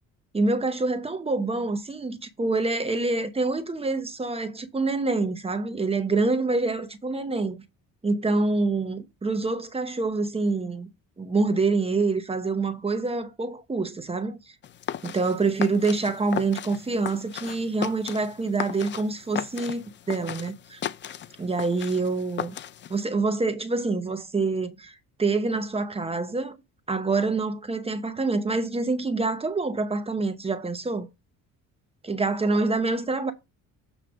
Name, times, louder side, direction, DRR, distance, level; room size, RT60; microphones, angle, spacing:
voice 1, 0.3-7.6 8.0-10.9 11.2-14.4 15.0-20.8 21.4-22.6 22.9-26.6 26.9-31.1 32.0-33.3, right 3 dB, 15° right, 0.8 m, -26 dB
sound 1, 14.6-23.0, left 10 dB, 35° left, 0.4 m, -36 dB
7.5 x 3.2 x 6.2 m
cardioid pair, 125°, 34 cm